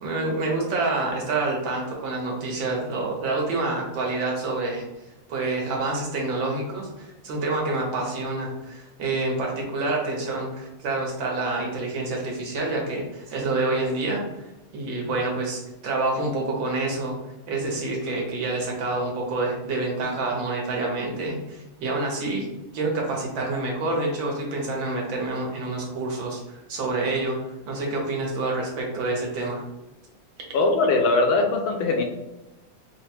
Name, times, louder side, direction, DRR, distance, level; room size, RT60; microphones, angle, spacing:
voice 1, 0.0-4.8 5.3-14.2 14.7-17.2 17.5-22.5 22.7-27.4 27.7-29.6, right 2 dB, 70° right, -1 dB, 1.7 m, -27 dB
voice 2, 30.5-32.0, left 3 dB, 75° left, 3 dB, 1.4 m, -21 dB
4.2 x 2.2 x 4.3 m, 0.98 s
omnidirectional pair, 2.3 m